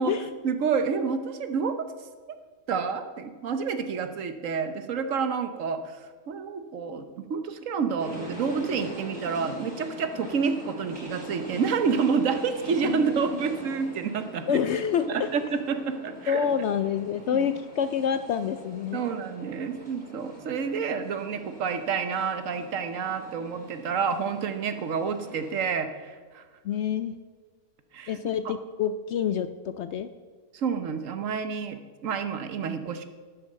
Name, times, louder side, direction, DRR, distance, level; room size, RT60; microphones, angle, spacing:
voice 1, 0.4-1.9 2.7-14.6 15.1-16.5 17.3-17.5 18.9-26.4 27.9-28.2 28.4-28.6 30.5-33.1, right 5 dB, 65° right, 9 dB, 1.2 m, -29 dB
sound 1, 8.0-25.6, right 1 dB, 15° right, 4.9 m, -43 dB
voice 2, 12.8-13.4 14.5-15.3 16.3-19.0 26.6-27.2 28.1-30.1, left 8 dB, 65° left, 12 dB, 0.7 m, -27 dB
12.0 x 8.8 x 6.5 m, 1.5 s
omnidirectional pair, 1.5 m